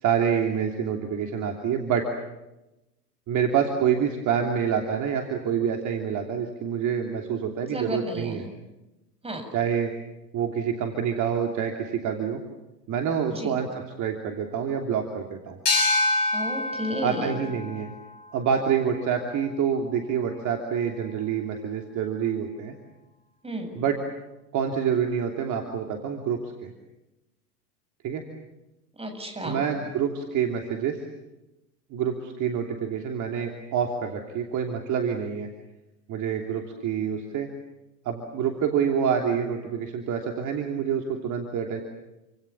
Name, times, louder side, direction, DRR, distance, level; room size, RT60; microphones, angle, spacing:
voice 1, 0.0-2.1 3.3-8.5 9.5-9.9 10.3-12.4 12.9-15.6 17.0-17.9 18.3-22.7 23.7-24.0 24.5-26.7 28.0-28.2 29.4-31.0 31.9-35.5 36.1-37.5 38.0-41.8, right 7 dB, 35° right, 3 dB, 3.1 m, -27 dB
voice 2, 7.7-8.4 9.2-9.5 13.3-13.6 16.3-17.4 23.4-23.7 29.0-29.6, equal, 10° right, 6 dB, 7.2 m, -32 dB
sound 1, 15.7-19.0, left 2 dB, 70° left, 6.2 m, -27 dB
29.5 x 26.5 x 7.1 m, 0.98 s
figure-of-eight pair, 90°, 49 cm